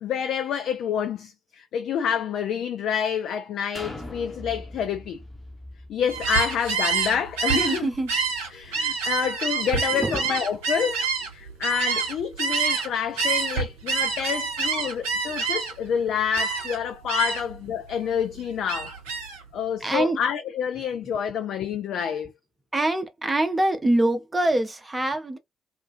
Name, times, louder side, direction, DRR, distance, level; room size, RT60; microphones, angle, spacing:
voice 1, 0.0-5.2 5.9-7.9 8.5-11.1 11.3-18.9 19.5-22.3, left 8 dB, 55° left, 0.3 m, -28 dB
sound 1, 3.8-7.5 8.1-8.2, left 1 dB, 20° left, 0.9 m, -41 dB
Gull seagull, 6.1-12.9 13.2-15.9 16.3-16.8 17.1-17.6 17.9-19.4, right 5 dB, 70° right, 0.6 m, -27 dB
voice 2, 7.5-8.1 8.6-8.9 9.9-10.2 11.5-11.6 19.8-20.2 22.7-25.4, right 1 dB, 20° right, 0.6 m, -25 dB
2.5 x 2.3 x 2.4 m
figure-of-eight pair, 40°, 0 cm